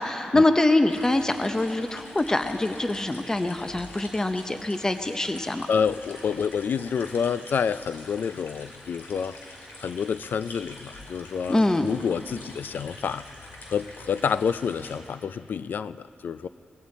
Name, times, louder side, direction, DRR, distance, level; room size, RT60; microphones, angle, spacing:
voice 1, 0.0-5.7 11.5-11.9, left 2 dB, 20° left, 8 dB, 0.7 m, -24 dB
sound 1, 0.9-15.0, left 2 dB, 85° left, 2.3 m, -45 dB
voice 2, 5.7-9.4 9.8-13.3 13.7-16.5, left 6 dB, 70° left, 15 dB, 0.3 m, -28 dB
20.5 x 15.5 x 4.2 m, 2.9 s
wide cardioid pair, 100°, 3 cm